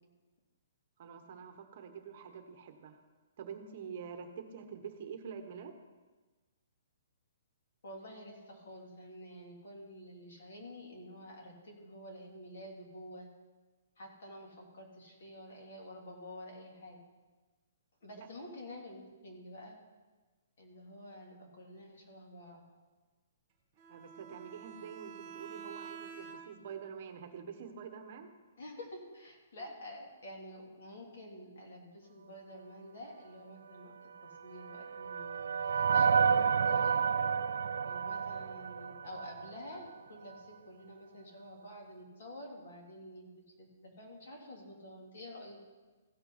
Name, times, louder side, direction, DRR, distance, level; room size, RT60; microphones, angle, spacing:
voice 1, 1.0-3.0 3.4-5.7 18.2-18.3 23.9-28.3, right 7 dB, 40° right, 6 dB, 1.1 m, -46 dB
voice 2, 7.8-13.3 14.0-17.0 18.0-19.8 20.6-22.6 28.6-33.9 34.4-37.0 37.8-45.6, left 1 dB, 60° left, -1 dB, 3.2 m, -49 dB
Bowed string instrument, 23.8-26.8, right 7 dB, 15° right, 2.1 m, -48 dB
sound 1, 34.2-39.6, right 6 dB, 80° right, 0.3 m, -30 dB
16.0 x 5.7 x 5.7 m, 1.3 s
hypercardioid pair, 170°, 0 cm